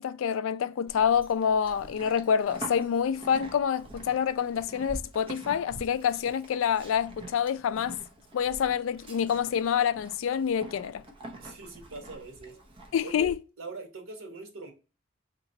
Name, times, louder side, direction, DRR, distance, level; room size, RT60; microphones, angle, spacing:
voice 1, 0.0-8.0 8.3-11.0 12.9-13.4, left 8 dB, 75° left, 0.3 m, -27 dB
Livestock farm animals working animals, 0.9-13.3, right 1 dB, 25° right, 0.7 m, -46 dB
voice 2, 11.4-12.6 13.0-14.7, right 3 dB, 85° right, 1.1 m, -42 dB
4.0 x 2.9 x 2.7 m
head